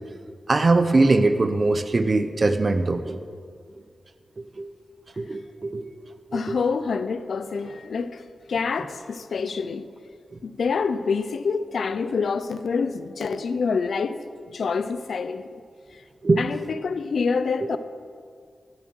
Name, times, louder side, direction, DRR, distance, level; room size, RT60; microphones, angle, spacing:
voice 1, 0.5-3.2 4.4-4.7 5.2-5.8 6.3-6.6 10.3-10.4 16.2-16.5 17.6-17.8, right 3 dB, 40° right, 0.8 m, -22 dB
voice 2, 6.3-8.2 8.5-9.8 10.4-14.2 14.5-15.6 16.4-17.8, left 5 dB, 75° left, 0.6 m, -26 dB
18.5 x 7.3 x 6.3 m
wide cardioid pair, 100°, 0 cm